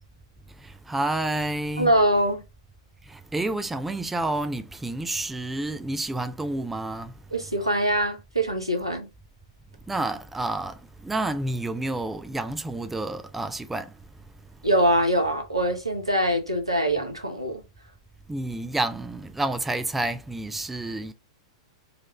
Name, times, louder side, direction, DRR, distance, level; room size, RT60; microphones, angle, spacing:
voice 1, 0.6-1.9 3.0-7.1 9.9-13.9 18.3-21.1, right 2 dB, 5° right, 0.3 m, -29 dB
voice 2, 1.8-2.4 7.3-9.1 14.6-17.6, right 1 dB, 90° right, 1.0 m, -23 dB
4.0 x 2.5 x 3.1 m
figure-of-eight pair, 100°, 3 cm